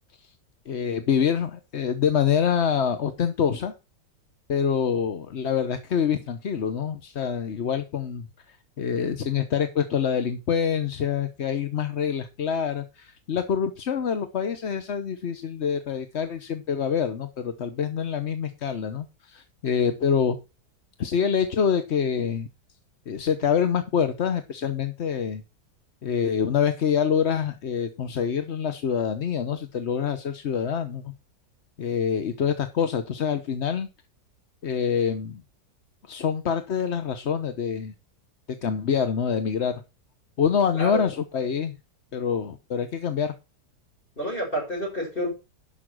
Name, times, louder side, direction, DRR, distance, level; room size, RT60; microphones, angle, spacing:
voice 1, 0.7-3.7 4.5-20.4 21.0-22.5 23.1-25.4 26.0-31.1 31.8-33.9 34.6-35.4 36.1-37.9 38.6-39.8 40.4-41.7 42.1-43.3, left 7 dB, 45° left, 1.0 m, -26 dB
voice 2, 40.7-41.1 44.2-45.3, equal, 30° left, 6.6 m, -29 dB
11.0 x 6.2 x 6.1 m
omnidirectional pair, 1.8 m